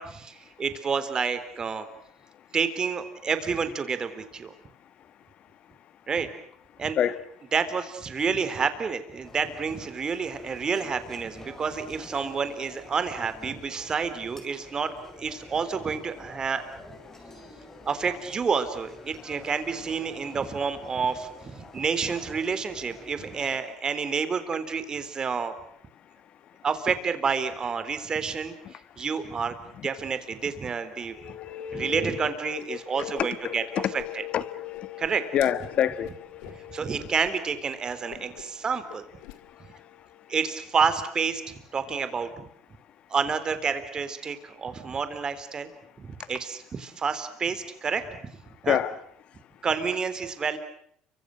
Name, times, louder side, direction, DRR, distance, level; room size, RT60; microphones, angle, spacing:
voice 1, 0.0-1.9 2.5-4.5 6.1-6.3 6.8-7.0 7.5-16.6 17.9-25.5 26.6-29.6 29.8-31.2 31.7-33.6 35.0-35.2 36.7-39.0 40.3-42.5 43.1-45.7 46.0-48.3 48.6-48.8 49.6-50.6, right 5 dB, 30° right, 3.5 m, -29 dB
sound 1, 9.2-23.6, left 2 dB, 15° left, 5.8 m, -48 dB
voice 2, 31.0-37.1 38.0-38.6 39.3-40.3 48.6-49.0, left 10 dB, 50° left, 1.6 m, -31 dB
Whoosh swoosh swish, 33.1-33.3 33.5-34.5 34.7-36.6 37.0-37.3 37.6-37.7 38.1-38.6 38.9-39.4, left 13 dB, 90° left, 2.3 m, -46 dB
29.5 x 25.0 x 6.4 m
cardioid pair, 110°, 2 cm